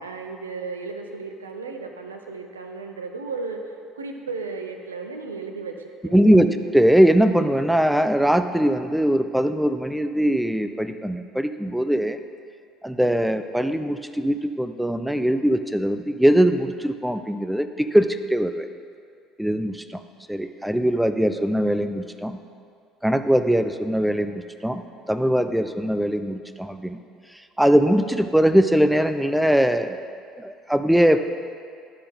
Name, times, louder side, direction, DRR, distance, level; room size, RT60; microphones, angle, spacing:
voice 1, 0.0-6.7, right 4 dB, 85° right, 4 dB, 0.6 m, -35 dB
voice 2, 6.1-6.5 6.7-12.2 12.8-18.7 19.4-20.0 20.3-22.4 23.0-24.8 25.1-27.0 27.6-30.0 30.4-31.2, equal, 5° right, 9 dB, 0.5 m, -21 dB
11.5 x 4.3 x 5.1 m, 2.3 s
hypercardioid pair, 60°, 0 cm